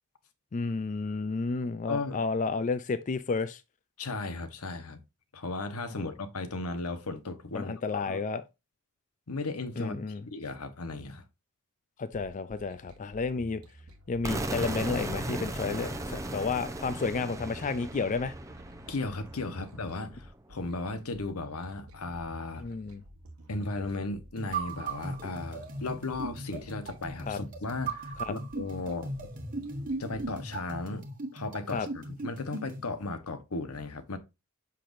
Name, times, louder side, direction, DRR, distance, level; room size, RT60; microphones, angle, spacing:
voice 1, 0.5-3.6 5.9-6.1 7.5-8.4 9.8-10.2 12.0-13.6 14.1-18.3 22.6-23.0 27.2-27.4 28.2-28.3 31.7-31.9, left 4 dB, 35° left, 0.4 m, -31 dB
voice 2, 1.9-2.2 4.0-5.0 5.3-8.2 9.3-11.2 18.9-22.7 23.5-29.3 30.0-31.0 31.3-34.2, left 3 dB, 80° left, 1.0 m, -36 dB
sound 1, 12.1-30.6, right 1 dB, 85° right, 1.2 m, -51 dB
sound 2, 14.2-20.1, right 1 dB, 15° right, 0.7 m, -37 dB
sound 3, 24.4-32.9, right 3 dB, 40° right, 1.2 m, -38 dB
6.6 x 5.9 x 2.5 m
head